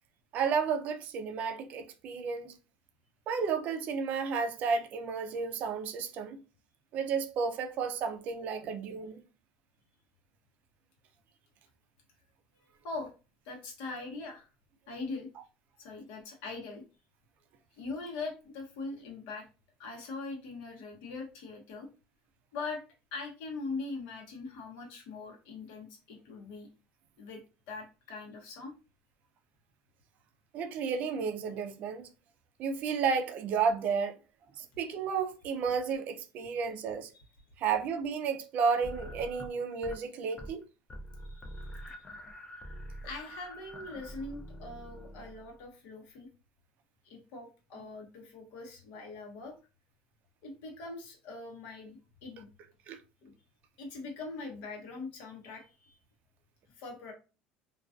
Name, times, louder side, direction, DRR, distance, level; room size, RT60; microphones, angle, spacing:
voice 1, 0.3-2.5 3.3-6.4 6.9-9.2 30.5-32.1 32.6-34.2 34.6-37.1 37.6-40.6 52.9-53.0, right 5 dB, 45° right, 0.4 m, -32 dB
voice 2, 13.4-14.5 14.9-15.3 15.8-16.8 17.7-19.5 19.8-21.9 22.5-22.8 23.1-26.7 27.2-27.4 27.7-28.7 36.4-36.5 41.2-42.0 43.0-46.3 47.0-49.5 50.4-52.5 53.2-53.3 53.8-56.0 56.7-57.1, left 3 dB, 70° left, 0.9 m, -42 dB
sound 1, 38.8-40.0 40.3-40.6 40.9-45.6, equal, 20° left, 0.4 m, -45 dB
2.3 x 2.2 x 2.4 m
cardioid pair, 135°, 4 cm